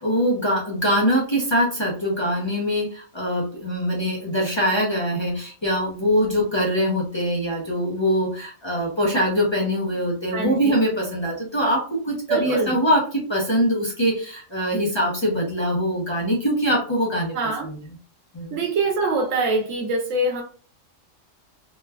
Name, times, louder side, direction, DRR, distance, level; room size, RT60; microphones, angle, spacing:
voice 1, 0.0-17.8 18.3-18.6, equal, 30° left, -4 dB, 0.6 m, -23 dB
voice 2, 10.3-10.8 12.3-12.7 17.3-17.7 18.5-20.4, right 2 dB, 90° right, 3 dB, 1.1 m, -24 dB
3.0 x 2.2 x 2.2 m, 0.39 s
omnidirectional pair, 1.3 m